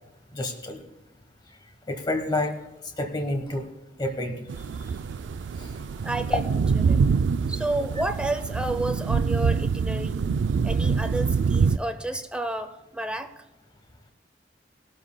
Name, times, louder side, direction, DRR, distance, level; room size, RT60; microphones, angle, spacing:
voice 1, 0.3-0.8 1.9-2.5 3.0-3.7 4.0-4.5 5.6-5.7, left 1 dB, 25° left, 4 dB, 1.2 m, -29 dB
sound 1, 4.5-11.8, right 5 dB, 80° right, 0.3 m, -25 dB
voice 2, 6.0-6.4 6.8-7.0 7.5-10.2 10.6-13.3, right 1 dB, 5° right, 8 dB, 0.6 m, -31 dB
20.5 x 12.5 x 2.2 m, 0.98 s
head